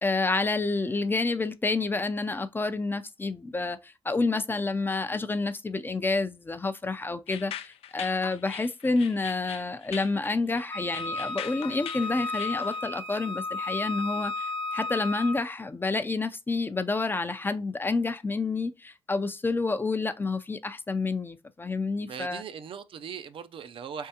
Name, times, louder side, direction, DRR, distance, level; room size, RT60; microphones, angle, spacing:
voice 1, 0.0-22.4, left 3 dB, 20° left, 0.4 m, -29 dB
sound 1, 7.3-12.8, left 10 dB, 85° left, 0.4 m, -41 dB
Wind instrument woodwind instrument, 10.7-15.4, left 3 dB, 55° left, 0.7 m, -33 dB
voice 2, 22.1-24.1, right 7 dB, 65° right, 0.5 m, -39 dB
4.2 x 3.6 x 2.7 m
cardioid pair, 85°, 10 cm